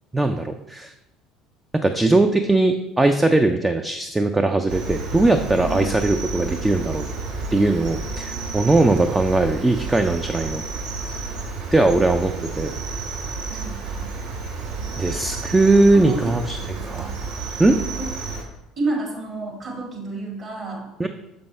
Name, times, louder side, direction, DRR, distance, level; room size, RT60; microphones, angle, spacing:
voice 1, 0.1-0.9 1.7-7.0 7.5-10.6 11.7-12.7 15.0-16.6 16.8-17.1 17.6-17.8 21.0-21.1, right 2 dB, 15° right, 6 dB, 0.4 m, -19 dB
Cricket, 4.7-18.4, right 4 dB, 60° right, 1.1 m, -31 dB
voice 2, 13.5-14.3 15.9-17.1 18.0-18.1 18.8-20.9, right 2 dB, 40° right, -1 dB, 1.9 m, -31 dB
6.6 x 5.3 x 3.3 m, 0.93 s
figure-of-eight pair, 60°, 0 cm